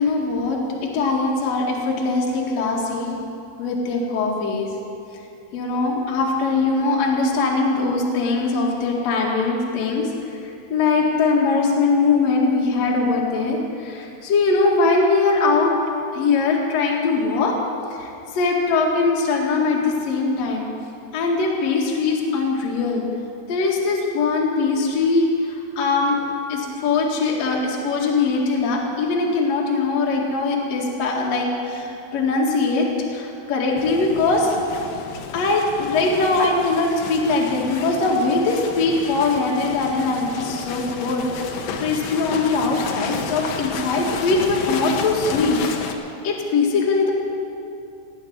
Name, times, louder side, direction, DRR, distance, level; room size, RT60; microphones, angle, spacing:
voice 1, 0.0-3.2 3.6-4.7 5.5-15.7 16.1-17.6 18.0-20.7 21.1-23.1 23.5-26.2 26.5-34.5 35.3-45.6 45.9-46.0 46.2-47.1, left 3 dB, 50° left, -2 dB, 2.3 m, -21 dB
sound 1, 33.8-45.9, left 5 dB, 80° left, 2.0 m, -32 dB
17.5 x 7.2 x 9.5 m, 2.6 s
omnidirectional pair, 5.5 m